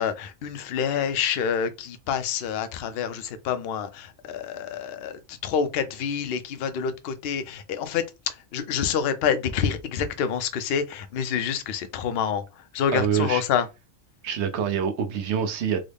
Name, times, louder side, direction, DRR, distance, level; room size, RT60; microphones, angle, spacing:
voice 1, 0.0-13.7, left 7 dB, 60° left, 0.7 m, -27 dB
voice 2, 12.9-13.4 14.2-15.8, right 7 dB, 60° right, 0.9 m, -25 dB
3.8 x 2.1 x 3.3 m
omnidirectional pair, 1.4 m